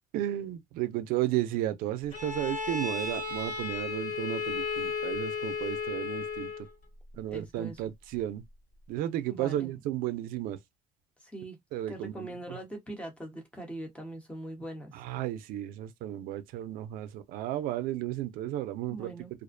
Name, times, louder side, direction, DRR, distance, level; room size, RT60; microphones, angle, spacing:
voice 1, 0.1-6.5 7.1-8.4 8.9-10.6 11.7-12.6 14.9-19.1, right 13 dB, 90° right, 0.5 m, -33 dB
Bowed string instrument, 2.1-6.7, left 5 dB, 55° left, 1.6 m, -34 dB
voice 2, 7.3-7.8 9.3-9.7 11.2-11.6 11.9-14.9 18.9-19.3, right 1 dB, 10° left, 0.9 m, -41 dB
2.5 x 2.1 x 2.4 m
cardioid pair, 135°, 14 cm